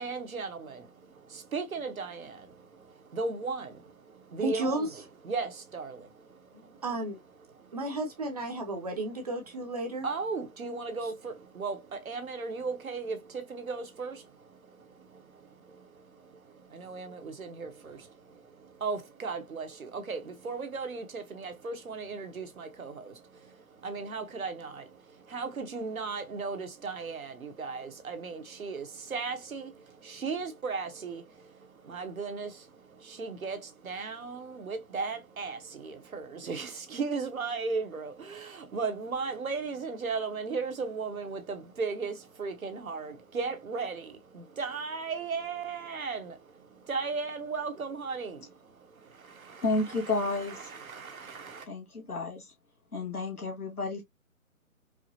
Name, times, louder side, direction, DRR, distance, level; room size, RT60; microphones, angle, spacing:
voice 1, 0.0-6.8 7.4-7.8 10.0-51.7, right 4 dB, 70° right, 1.0 m, -37 dB
voice 2, 4.4-4.9 6.8-7.2 7.7-10.1, right 2 dB, 25° right, 0.7 m, -32 dB
voice 3, 49.6-50.8 51.7-52.5 52.9-54.0, left 2 dB, 85° left, 2.0 m, -31 dB
4.8 x 2.1 x 2.7 m
figure-of-eight pair, 145°, 43 cm